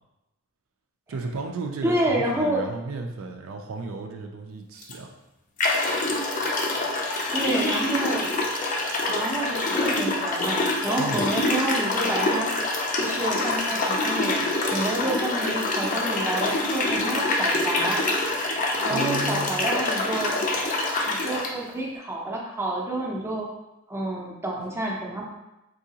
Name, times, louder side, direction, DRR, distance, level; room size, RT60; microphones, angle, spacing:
voice 1, 1.1-5.1 11.0-11.3 18.9-19.5, right 3 dB, 85° right, 3 dB, 0.4 m, -34 dB
voice 2, 1.8-2.6 7.3-8.3 9.1-12.5 13.0-18.0 18.4-18.5 18.8-20.4 21.1-23.5 23.9-25.3, right 1 dB, 15° right, -3 dB, 0.5 m, -29 dB
sound 1, 4.8-4.9 5.6-21.5, left 2 dB, 40° left, 0.5 m, -25 dB
3.7 x 2.8 x 2.8 m, 0.95 s
head